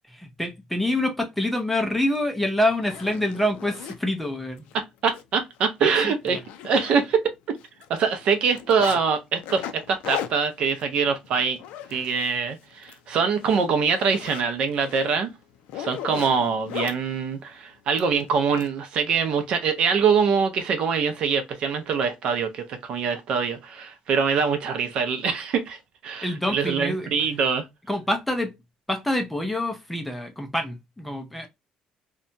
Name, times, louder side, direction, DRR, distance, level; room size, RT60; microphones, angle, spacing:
voice 1, 0.0-4.7 5.8-6.4 26.2-27.2 27.9-28.5 28.9-31.5, left 1 dB, 5° left, 0.4 m, -26 dB
Zipper (clothing), 2.2-2.3 2.7-4.0 4.6-4.7 5.1-5.2 5.6-5.7 6.0-7.3 7.6-9.0 9.4-12.4 12.7-13.0 13.3-17.0 18.0-18.7, left 10 dB, 85° left, 0.4 m, -37 dB
voice 2, 4.7-7.2 7.5-7.6 7.9-11.6 11.9-15.3 15.7-25.8 26.0-27.7, right 6 dB, 45° right, 0.5 m, -24 dB
2.7 x 2.2 x 2.5 m
cardioid pair, 175°, 2 cm